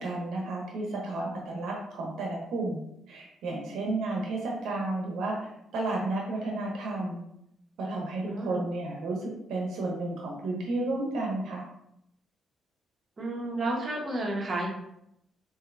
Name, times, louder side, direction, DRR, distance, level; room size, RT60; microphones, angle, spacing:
voice 1, 0.0-7.2 7.8-11.6, right 2 dB, 80° right, -1 dB, 0.8 m, -32 dB
voice 2, 8.2-8.6 13.2-14.7, right 1 dB, 35° right, -2 dB, 0.9 m, -31 dB
4.2 x 2.6 x 2.5 m, 0.78 s
cardioid pair, 90°, 0 cm